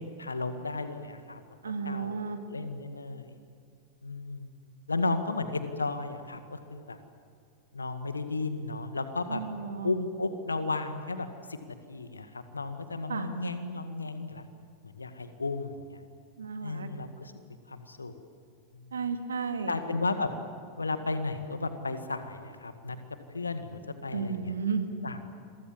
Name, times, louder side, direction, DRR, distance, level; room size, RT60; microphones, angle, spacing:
voice 1, 0.0-2.1 2.5-3.4 4.0-4.5 4.9-7.0 7.7-9.4 9.8-14.5 14.8-16.0 16.6-17.3 17.7-18.1 18.7-19.0 19.7-20.3 20.8-23.0 23.3-24.5 25.0-25.3, left 3 dB, 80° left, 9 dB, 1.9 m, -34 dB
voice 2, 1.6-2.4 9.3-9.9 13.1-13.3 16.4-16.9 18.9-19.7 24.1-24.9, right 5 dB, 70° right, 7 dB, 2.3 m, -33 dB
28.5 x 23.0 x 7.5 m, 2.3 s
figure-of-eight pair, 90°, 0 cm